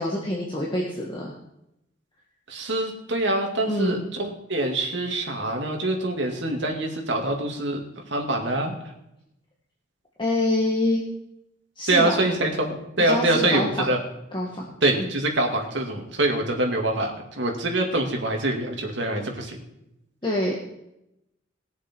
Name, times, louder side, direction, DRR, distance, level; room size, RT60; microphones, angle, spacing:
voice 1, 0.0-1.3 3.7-4.0 10.2-11.0 11.8-12.1 13.0-13.9 14.3-15.1 20.2-20.6, left 1 dB, 25° left, -3 dB, 1.7 m, -26 dB
voice 2, 2.5-7.8 8.1-8.8 11.9-14.0 14.8-19.6, right 2 dB, 65° right, 2 dB, 2.4 m, -25 dB
20.0 x 7.1 x 4.6 m, 0.84 s
head